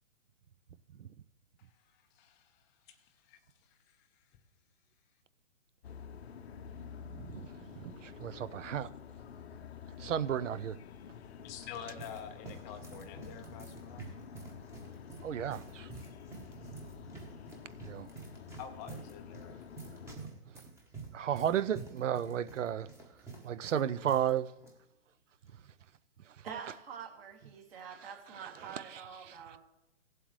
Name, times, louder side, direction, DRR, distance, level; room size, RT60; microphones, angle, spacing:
voice 1, 1.9-3.4 3.7-4.0 11.4-14.0 18.6-19.6, left 8 dB, 15° left, 0.5 m, -48 dB
sound 1, 5.8-20.2, left 7 dB, 55° left, 0.7 m, -49 dB
voice 2, 7.1-7.5 7.8-8.9 10.0-10.8 15.2-15.9 17.8-18.1 21.1-22.9 23.4-24.5, right 9 dB, 75° right, 0.6 m, -33 dB
sound 2, 11.4-24.3 24.6-24.7 25.5-25.8, right 4 dB, 5° right, 1.0 m, -49 dB
voice 3, 26.4-29.6, right 7 dB, 50° right, 2.6 m, -46 dB
17.5 x 7.8 x 3.2 m
hypercardioid pair, 140°, 38 cm